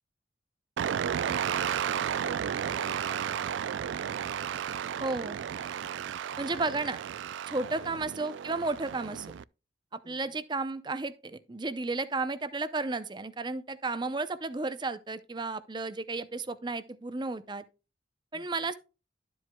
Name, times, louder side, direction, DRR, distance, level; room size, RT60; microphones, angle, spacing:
sound 1, 0.8-9.4, right 8 dB, 75° right, 0.3 m, -33 dB
voice 1, 2.2-3.4 7.6-7.9 10.0-10.4 18.3-18.7, left 1 dB, 80° left, 3.0 m, -51 dB
voice 2, 5.0-5.4 6.4-7.0 7.5-9.3 9.9-17.7 18.3-18.7, right 3 dB, 25° right, 0.5 m, -33 dB
12.0 x 7.7 x 2.2 m
head